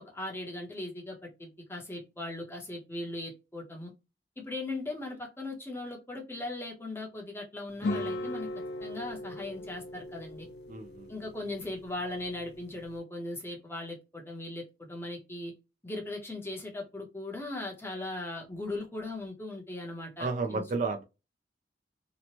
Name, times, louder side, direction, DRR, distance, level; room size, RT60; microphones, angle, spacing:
voice 1, 0.0-3.9 4.4-8.5 8.8-10.5 11.1-15.5 15.8-20.6, left 2 dB, 15° left, 0.7 m, -39 dB
sound 1, 7.8-13.0, left 1 dB, 70° left, 0.4 m, -39 dB
voice 2, 10.7-11.1 20.2-21.0, right 4 dB, 45° right, 0.3 m, -32 dB
2.9 x 2.1 x 2.8 m
head